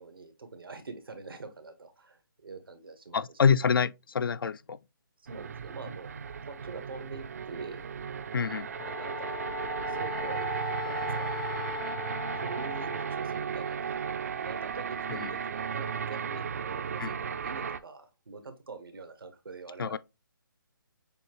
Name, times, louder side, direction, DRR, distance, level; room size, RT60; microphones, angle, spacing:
voice 1, 0.0-3.2 5.2-6.1 6.4-7.9 8.8-9.4 9.9-10.6 10.8-11.3 12.4-14.0 14.4-20.0, right 4 dB, 85° right, 1.3 m, -44 dB
voice 2, 3.1-4.8 8.3-8.7 15.1-15.3 17.0-17.1 19.8-20.0, left 6 dB, 75° left, 0.4 m, -26 dB
sound 1, 5.3-17.8, right 7 dB, 45° right, 0.4 m, -35 dB
Wind instrument woodwind instrument, 8.7-13.2, left 16 dB, 15° left, 0.5 m, -39 dB
6.7 x 2.4 x 3.0 m
hypercardioid pair, 165°, 12 cm